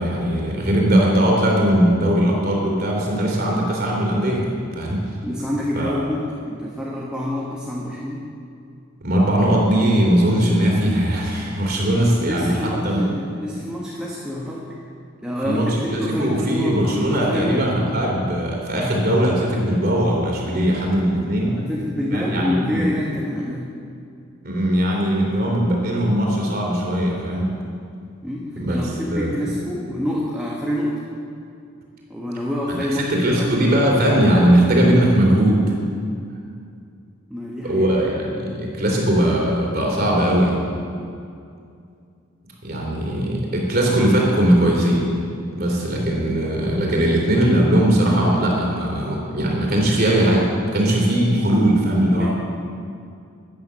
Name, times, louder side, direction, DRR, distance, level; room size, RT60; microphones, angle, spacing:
voice 1, 0.0-4.4 4.7-5.1 5.7-6.0 9.0-13.1 15.4-21.6 22.1-22.9 24.4-27.5 28.5-28.8 29.1-29.5 32.9-35.7 37.6-40.6 42.6-45.1 45.5-52.3, right 1 dB, 45° right, -1 dB, 3.1 m, -19 dB
voice 2, 5.2-8.2 11.6-14.7 15.2-17.6 21.4-23.7 28.2-31.0 32.1-33.6 37.3-37.9 52.0-52.3, left 1 dB, 5° right, -5 dB, 1.4 m, -27 dB
15.0 x 9.4 x 6.9 m, 2.4 s
head